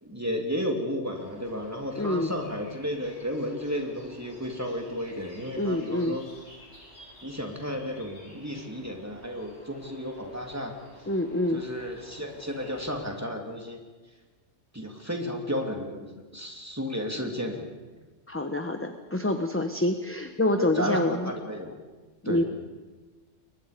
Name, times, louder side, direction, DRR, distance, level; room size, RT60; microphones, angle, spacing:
voice 1, 0.0-6.2 7.2-10.7 11.5-13.8 14.7-17.7 20.6-21.8 22.2-22.4, equal, 10° right, 2 dB, 3.1 m, -33 dB
sound 1, 1.1-13.0, equal, 60° left, 8.4 m, -52 dB
voice 2, 2.0-2.3 5.6-6.2 11.1-11.6 18.3-21.3 22.2-22.4, left 1 dB, 10° left, 6 dB, 1.0 m, -27 dB
29.5 x 23.0 x 5.2 m, 1.3 s
omnidirectional pair, 1.3 m